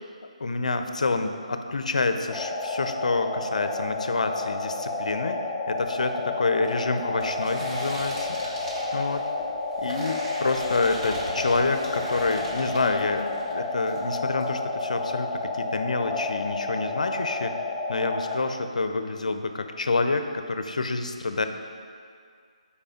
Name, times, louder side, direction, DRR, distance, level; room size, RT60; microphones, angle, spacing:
voice 1, 0.4-5.4 5.7-8.6 8.9-9.2 9.8-15.3 15.5-17.5 17.9-21.5, left 3 dB, 75° left, 7 dB, 0.5 m, -27 dB
sound 1, 2.3-18.4, left 3 dB, 10° left, 0.6 m, -31 dB
sound 2, 5.8-13.5 13.8-14.5, equal, 35° right, 1.7 m, -39 dB
5.3 x 4.8 x 5.0 m, 2.2 s
figure-of-eight pair, 155°, 4 cm